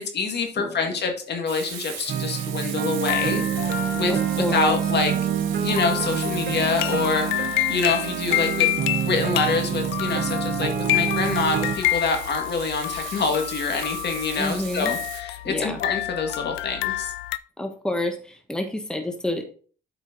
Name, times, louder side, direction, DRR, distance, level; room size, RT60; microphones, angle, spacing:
voice 1, 0.0-3.4 3.9-5.1 5.6-8.7 9.0-17.1, left 4 dB, 60° left, 4 dB, 1.9 m, -26 dB
voice 2, 0.6-0.9 4.1-4.8 14.3-14.9 15.4-15.8 17.6-19.4, left 1 dB, 5° left, 4 dB, 1.2 m, -29 dB
Frying (food), 1.5-15.2, right 8 dB, 75° right, 1.8 m, -39 dB
sound 1, 2.1-11.8, right 9 dB, 55° right, 0.8 m, -27 dB
sound 2, 3.1-17.4, left 17 dB, 90° left, 0.4 m, -29 dB
8.3 x 5.0 x 3.9 m, 0.42 s
cardioid pair, 90°, 20 cm